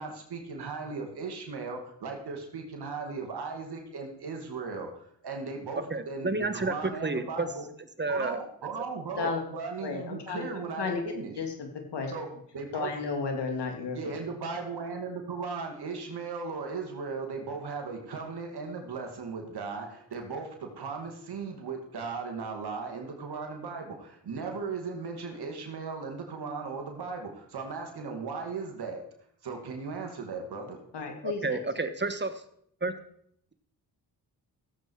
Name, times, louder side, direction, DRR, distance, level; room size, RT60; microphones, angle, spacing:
voice 1, 0.0-7.7 8.1-11.3 12.1-12.3 12.5-12.9 13.9-29.1 29.4-30.8, right 4 dB, 70° right, 3 dB, 2.5 m, -37 dB
voice 2, 5.9-7.5 8.0-8.4 9.2-9.3 31.2-32.3 32.8-32.9, right 3 dB, 25° right, 11 dB, 1.4 m, -30 dB
voice 3, 9.8-10.4 10.8-11.0 11.4-12.1 12.7-14.1 30.9-31.6, left 4 dB, 80° left, 3 dB, 2.8 m, -33 dB
15.5 x 8.1 x 4.7 m, 0.68 s
cardioid pair, 55°, 41 cm